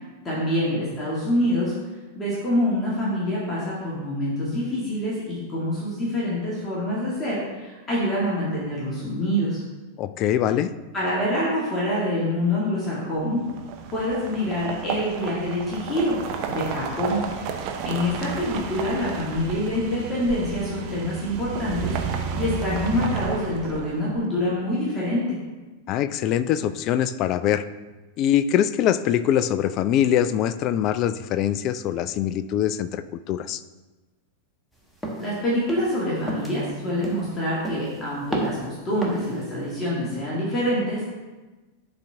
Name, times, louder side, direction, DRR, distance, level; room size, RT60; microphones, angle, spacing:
voice 1, 0.2-1.7 2.1-9.6 10.9-13.4 13.9-16.2 16.5-17.3 17.8-22.0 22.4-25.4 35.2-41.2, left 1 dB, 20° left, -7 dB, 2.3 m, -26 dB
voice 2, 10.0-10.7 25.9-27.6 28.2-33.6, left 10 dB, 40° left, 13 dB, 0.4 m, -23 dB
sound 1, 13.4-24.2, right 6 dB, 40° right, 0.8 m, -32 dB
sound 2, 35.0-35.3 35.7-36.0 36.3-36.6 37.0-37.4 37.6-38.0 38.3-38.7 39.0-39.3, right 1 dB, 5° left, 1.3 m, -31 dB
11.5 x 4.4 x 3.6 m, 1.2 s
figure-of-eight pair, 90°, 0 cm